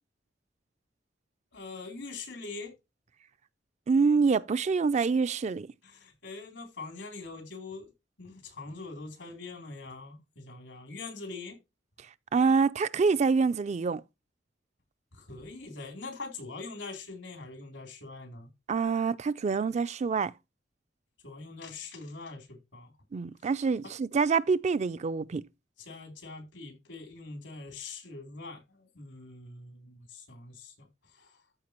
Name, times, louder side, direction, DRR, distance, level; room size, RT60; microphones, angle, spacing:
voice 1, 1.5-2.7 5.8-7.9 8.2-11.6 15.1-18.5 21.2-22.9 25.8-31.4, left 3 dB, 90° left, 3.4 m, -43 dB
voice 2, 3.9-5.7 12.3-14.0 18.7-20.3 23.1-25.4, right 5 dB, 35° right, 0.4 m, -26 dB
13.5 x 4.8 x 2.9 m
head